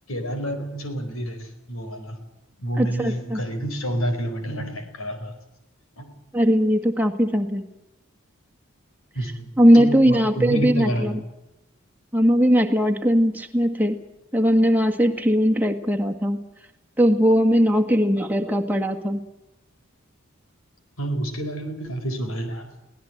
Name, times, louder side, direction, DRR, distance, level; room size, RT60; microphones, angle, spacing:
voice 1, 0.1-2.2 2.6-5.3 6.0-6.1 9.1-9.5 9.7-11.2 21.0-22.7, right 1 dB, 80° left, 7 dB, 4.6 m, -29 dB
voice 2, 2.8-3.4 6.3-7.7 9.6-11.1 12.1-14.0 14.3-16.4 17.0-19.2, equal, 10° right, 3 dB, 1.8 m, -19 dB
23.0 x 17.5 x 8.0 m, 0.95 s
head